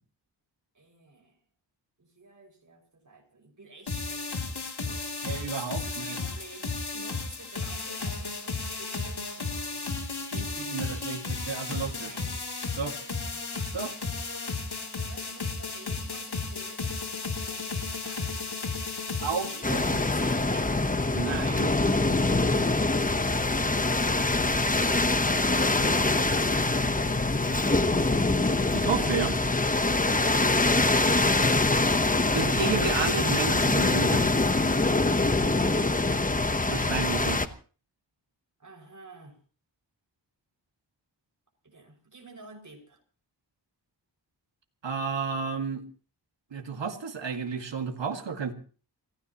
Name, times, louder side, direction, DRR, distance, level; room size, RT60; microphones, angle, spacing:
voice 1, 0.7-1.4 2.0-5.0 5.5-9.9 10.4-11.2 12.0-12.4 13.2-13.4 14.8-18.8 19.5-20.8 38.6-39.4 41.6-43.0, right 3 dB, 45° right, 3 dB, 6.0 m, -51 dB
sound 1, 3.9-20.5, left 4 dB, 60° left, 2.9 m, -34 dB
voice 2, 5.2-6.2 10.3-12.1 12.8-13.0 13.7-13.9 19.2-19.8 21.1-21.7 28.7-29.4 32.3-34.3 36.7-37.4 44.8-45.8 46.5-48.5, right 5 dB, 80° right, 5 dB, 2.0 m, -31 dB
sound 2, 19.6-37.5, left 2 dB, 20° left, 1.0 m, -24 dB
27.5 x 16.0 x 3.0 m, 0.39 s
wide cardioid pair, 85°, 43 cm